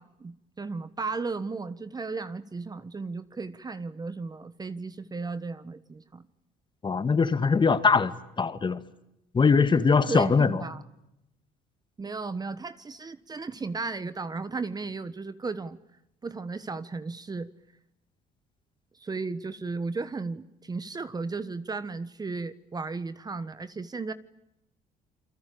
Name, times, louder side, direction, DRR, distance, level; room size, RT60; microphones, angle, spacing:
voice 1, 0.0-6.2 10.1-10.8 12.0-15.8 16.2-17.5 18.9-24.1, right 4 dB, 25° right, 1.4 m, -35 dB
voice 2, 6.8-8.1 8.4-8.8 9.3-10.6, left 5 dB, 25° left, 2.0 m, -22 dB
29.0 x 23.0 x 8.7 m
cardioid pair, 110°, 17 cm